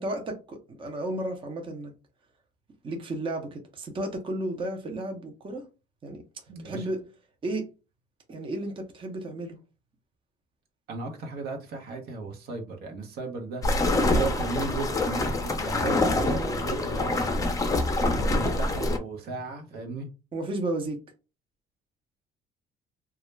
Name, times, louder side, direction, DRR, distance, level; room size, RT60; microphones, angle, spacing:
voice 1, 0.0-1.9 2.8-5.6 6.0-6.2 6.6-7.1 7.4-7.7 8.3-9.6 16.2-16.7 20.3-21.0, right 1 dB, 30° right, 0.6 m, -33 dB
voice 2, 6.5-6.9 10.9-13.6 14.1-17.3 18.3-20.1, right 3 dB, 70° right, 0.8 m, -35 dB
sound 1, 13.6-19.0, left 2 dB, 20° left, 0.5 m, -25 dB
2.3 x 2.0 x 3.1 m
cardioid pair, 110°, 17 cm